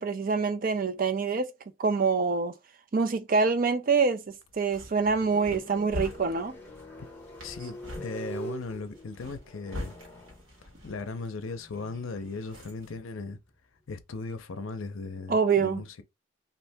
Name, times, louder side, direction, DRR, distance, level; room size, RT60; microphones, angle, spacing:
voice 1, 0.0-1.5 1.8-2.5 2.9-6.6 15.3-15.8, right 5 dB, 40° right, 0.4 m, -26 dB
sound 1, 4.3-14.5, right 1 dB, 10° left, 0.8 m, -46 dB
sound 2, 4.5-13.0, left 1 dB, 80° right, 1.4 m, -44 dB
voice 2, 7.4-9.9 10.6-13.4 13.9-16.0, left 3 dB, 75° left, 0.5 m, -37 dB
2.7 x 2.5 x 3.4 m
head